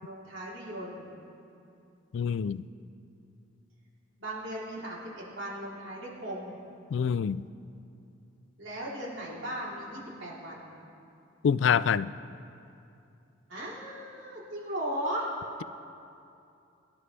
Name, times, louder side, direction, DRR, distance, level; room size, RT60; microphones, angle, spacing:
voice 1, 0.0-1.1 4.2-6.6 8.6-10.8 13.5-15.3, right 1 dB, 80° right, -6 dB, 3.5 m, -37 dB
voice 2, 2.1-2.6 6.9-7.4 11.4-12.1, left 7 dB, 70° left, 18 dB, 0.3 m, -26 dB
22.5 x 11.5 x 3.3 m, 2.6 s
head